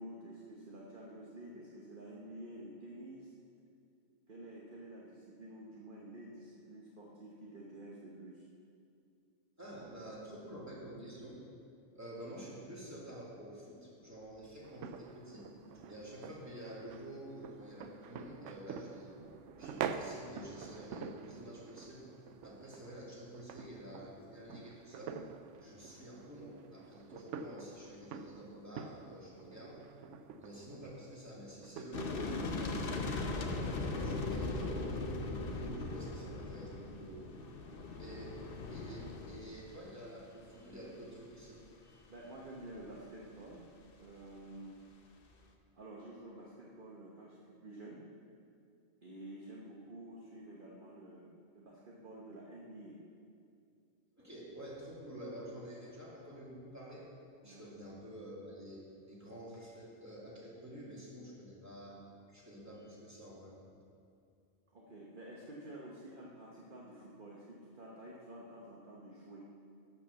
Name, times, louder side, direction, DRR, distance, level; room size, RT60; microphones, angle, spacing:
voice 1, 0.0-3.3 4.3-8.5 38.7-38.9 42.1-43.6 44.0-44.8 45.7-48.0 49.0-53.0 57.4-57.6 64.7-69.5, right 1 dB, 45° right, -4 dB, 1.3 m, -50 dB
voice 2, 9.6-11.4 11.9-15.5 15.7-19.1 19.6-22.1 22.4-25.2 25.6-29.8 30.4-34.8 35.4-37.2 38.0-38.4 38.7-42.1 54.2-57.1 57.4-62.0 62.3-63.5, right 1 dB, 15° right, -7 dB, 2.8 m, -49 dB
sound 1, 14.6-32.0, right 6 dB, 85° right, 0.9 m, -47 dB
sound 2, 31.9-39.8 40.0-40.1 40.3-40.4, left 2 dB, 55° left, 1.0 m, -39 dB
11.5 x 5.9 x 7.0 m, 2.4 s
omnidirectional pair, 1.2 m